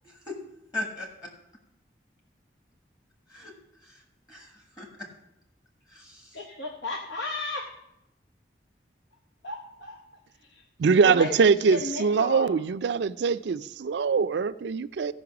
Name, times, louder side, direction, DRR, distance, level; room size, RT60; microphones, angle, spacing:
voice 1, 0.0-0.4 0.7-1.3 3.3-3.5 3.8-4.0 4.3-5.1 5.9-6.4, left 2 dB, 25° left, 0 dB, 1.5 m, -38 dB
voice 2, 6.3-7.7 9.4-10.0 10.4-10.6 11.0-12.5, left 3 dB, 80° left, 2 dB, 1.0 m, -34 dB
voice 3, 10.8-15.1, right 5 dB, 70° right, 15 dB, 0.4 m, -23 dB
15.5 x 5.4 x 5.9 m, 0.88 s
head